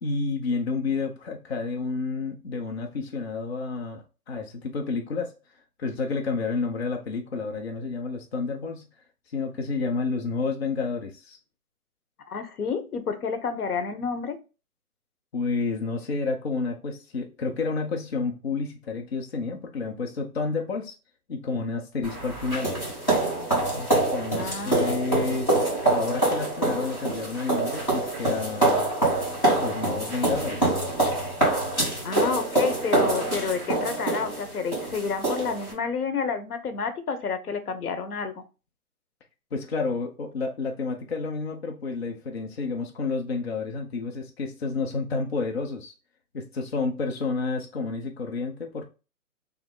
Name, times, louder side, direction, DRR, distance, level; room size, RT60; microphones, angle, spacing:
voice 1, 0.0-5.3 5.8-8.9 9.3-11.4 15.3-20.9 21.3-22.8 23.7-28.9 29.6-30.8 39.5-45.9 46.3-48.8, left 4 dB, 45° left, 0.7 m, -30 dB
voice 2, 12.3-14.4 24.3-25.0 32.0-38.4, left 5 dB, 75° left, 1.0 m, -30 dB
sound 1, 22.0-35.7, right 2 dB, 10° left, 1.2 m, -25 dB
3.5 x 3.1 x 3.7 m
hypercardioid pair, 170°, 45 cm